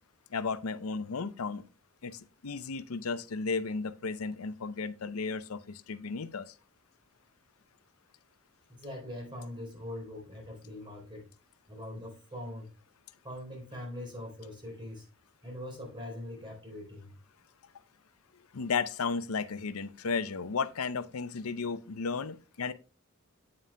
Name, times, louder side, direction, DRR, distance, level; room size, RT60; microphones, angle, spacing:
voice 1, 0.3-1.6 2.0-6.5 18.5-22.7, left 4 dB, 80° left, 0.6 m, -34 dB
voice 2, 8.7-11.3 11.7-12.7 13.2-15.1 15.4-17.1, left 1 dB, 25° right, 3.9 m, -42 dB
8.8 x 7.4 x 2.2 m
head